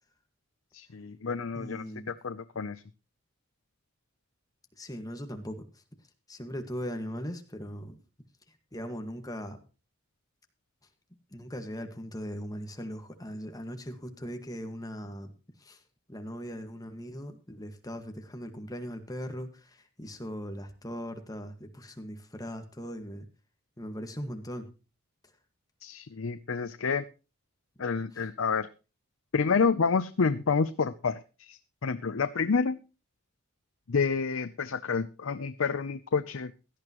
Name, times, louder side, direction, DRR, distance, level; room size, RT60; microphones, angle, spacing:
voice 1, 0.7-2.8 25.8-27.0 27.8-28.7 29.3-32.8 33.9-36.5, left 5 dB, 75° left, 11 dB, 0.6 m, -29 dB
voice 2, 1.5-2.1 4.8-5.8 6.3-8.0 8.5-9.6 11.3-15.3 15.6-15.8 16.1-23.3 23.8-24.7 28.1-28.3, equal, 20° left, 6 dB, 1.8 m, -39 dB
17.0 x 12.0 x 3.1 m, 0.32 s
head